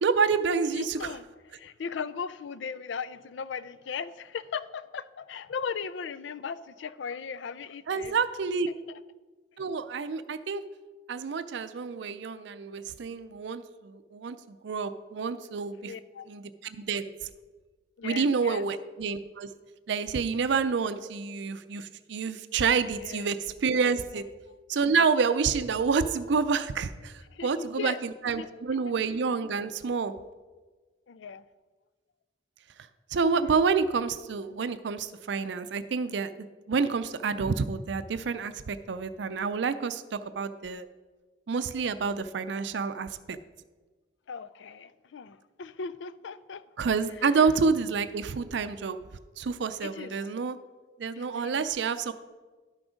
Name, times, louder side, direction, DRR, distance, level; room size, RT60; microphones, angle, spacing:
voice 1, 0.0-1.1 7.9-8.7 9.6-10.6 11.1-15.9 16.3-17.1 18.0-19.5 19.9-24.2 24.7-27.1 27.4-27.9 28.2-30.1 33.1-40.9 41.5-43.4 46.8-49.0 49.4-50.6 51.0-52.1, right 5 dB, 70° right, 12 dB, 0.5 m, -28 dB
voice 2, 0.8-1.2 1.5-8.2 8.7-9.0 15.8-16.3 18.0-18.6 23.0-23.3 24.1-24.6 27.3-28.0 28.4-28.9 31.1-31.4 44.3-46.7 47.2-47.5 49.8-50.3 51.2-51.7, left 6 dB, 80° left, 15 dB, 0.4 m, -38 dB
12.0 x 6.1 x 5.0 m, 1.3 s
head